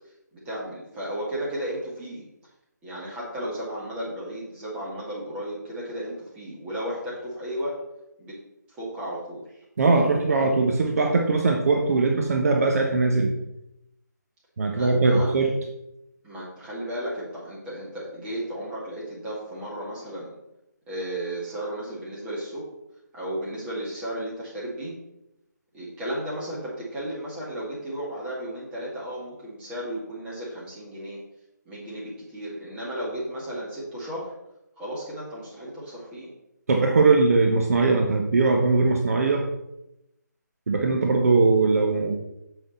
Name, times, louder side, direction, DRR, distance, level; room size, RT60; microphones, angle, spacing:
voice 1, 0.4-2.2 2.8-7.8 8.2-8.4 8.7-9.6 14.7-15.3 16.2-20.3 20.9-22.7 23.1-25.0 25.7-31.2 31.6-34.3 34.8-36.3, right 1 dB, 10° right, -7 dB, 2.3 m, -34 dB
voice 2, 9.8-13.3 14.6-15.5 36.7-39.4 40.7-42.1, right 3 dB, 50° right, 2 dB, 1.0 m, -20 dB
7.5 x 6.0 x 4.1 m, 0.86 s
figure-of-eight pair, 155°, 10 cm